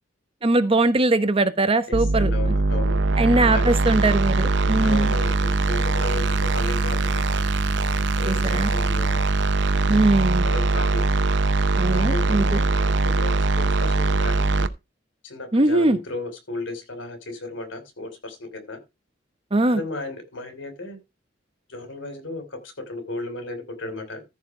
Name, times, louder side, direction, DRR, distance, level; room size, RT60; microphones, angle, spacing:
voice 1, 0.4-2.3 3.2-5.1 8.3-8.7 9.9-10.5 11.8-12.6 15.5-16.0 19.5-19.8, right 2 dB, 30° right, 0.9 m, -21 dB
voice 2, 1.9-3.0 3.4-3.7 4.8-7.5 8.2-9.2 10.4-11.1 11.9-14.7 15.2-18.8 19.7-21.0 21.7-24.2, left 2 dB, 85° left, 3.2 m, -34 dB
sound 1, 1.9-14.7, right 2 dB, 65° right, 0.7 m, -21 dB
14.5 x 4.8 x 4.7 m
head